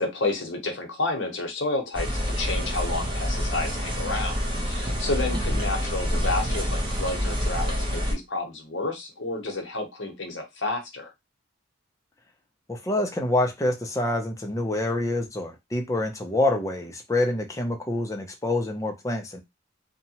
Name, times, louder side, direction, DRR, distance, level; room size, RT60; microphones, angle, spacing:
voice 1, 0.0-4.3 4.6-11.1, left 2 dB, 60° left, 0.8 m, -30 dB
sound 1, 1.9-8.1, equal, 25° right, 0.7 m, -27 dB
voice 2, 12.7-19.4, left 1 dB, 15° left, 0.5 m, -26 dB
2.8 x 2.1 x 2.8 m
head